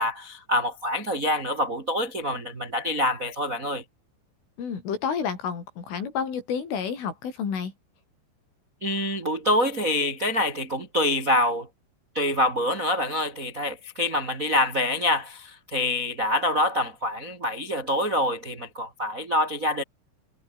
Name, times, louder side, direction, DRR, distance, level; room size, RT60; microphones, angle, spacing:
voice 1, 0.0-3.8 8.8-11.7 12.1-19.8, left 1 dB, 35° right, 1.3 m, -26 dB
voice 2, 4.6-7.7, left 7 dB, 85° left, 7.7 m, -30 dB
omnidirectional pair, 5.5 m